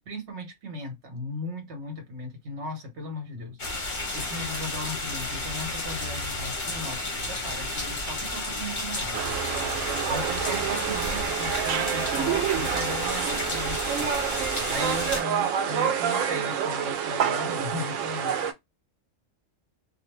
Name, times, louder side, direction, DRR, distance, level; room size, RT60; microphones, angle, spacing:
voice 1, 0.0-3.6 4.1-9.3 10.1-14.1 14.7-18.4, left 1 dB, 60° right, 1.3 m, -37 dB
sound 1, 3.6-15.2, left 2 dB, 40° left, 1.0 m, -32 dB
sound 2, 9.1-18.5, right 8 dB, 80° right, 0.9 m, -28 dB
2.5 x 2.1 x 3.2 m
omnidirectional pair, 1.4 m